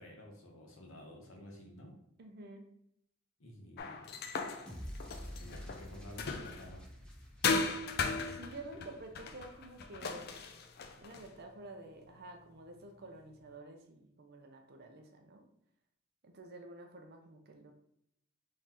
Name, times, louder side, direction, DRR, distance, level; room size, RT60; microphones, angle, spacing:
voice 1, 0.0-1.9 3.4-4.0 5.4-6.8, left 1 dB, 70° left, 0 dB, 1.0 m, -51 dB
voice 2, 2.2-2.6 8.2-10.4 11.0-15.4 16.2-17.7, right 2 dB, 50° right, 4 dB, 0.5 m, -50 dB
sound 1, 3.8-6.8 7.4-11.3, left 4 dB, 50° left, 0.4 m, -37 dB
sound 2, 4.7-8.9, equal, 5° left, 0.6 m, -48 dB
3.7 x 3.2 x 2.9 m, 0.75 s
head